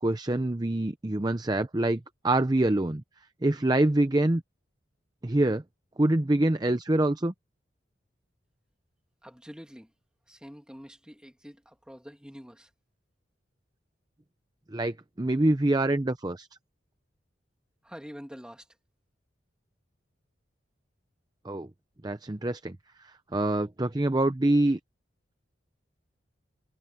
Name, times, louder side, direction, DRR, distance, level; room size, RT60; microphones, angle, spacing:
voice 1, 0.0-3.0 3.4-4.4 5.2-5.6 6.0-7.3 14.7-16.5 21.4-21.7 22.0-24.8, right 1 dB, 20° right, 0.6 m, -25 dB
voice 2, 9.2-9.9 10.3-12.7 17.8-18.7, equal, 5° right, 2.3 m, -46 dB
head